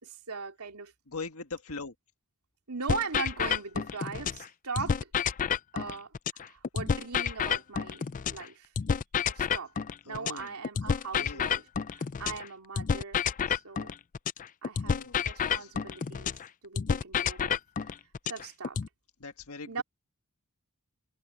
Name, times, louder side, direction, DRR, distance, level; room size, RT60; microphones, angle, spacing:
voice 1, 0.0-0.9 2.7-5.1 5.7-8.0 8.3-8.7 9.3-9.7 10.0-11.6 11.9-13.2 13.5-13.9 14.6-15.0 15.3-16.4 16.6-17.6 18.3-18.8 19.7-19.8, right 4 dB, 90° right, 2.7 m, -39 dB
voice 2, 1.1-1.9 10.1-10.5 10.8-11.5 14.8-15.2 15.6-15.7 19.2-19.8, left 4 dB, 75° left, 1.7 m, -41 dB
sound 1, 2.9-4.5 4.8-8.5 8.8-12.5 12.8-16.5 16.8-18.9, left 7 dB, 35° left, 0.4 m, -30 dB
head